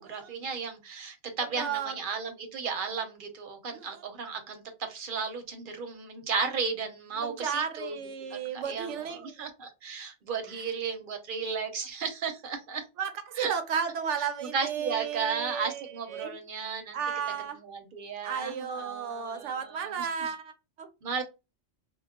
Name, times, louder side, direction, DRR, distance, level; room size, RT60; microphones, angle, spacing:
voice 1, 0.0-4.6 4.9-8.0 8.3-12.8 13.4-13.5 14.4-17.0 17.6-20.3 21.0-21.2, right 5 dB, 55° right, 0.7 m, -34 dB
voice 2, 1.6-2.0 3.7-3.9 7.2-9.3 10.5-10.6 13.0-15.8 16.1-16.4 16.9-17.6 18.2-20.9, right 7 dB, 80° right, 0.9 m, -33 dB
2.2 x 2.0 x 3.5 m
omnidirectional pair, 1.2 m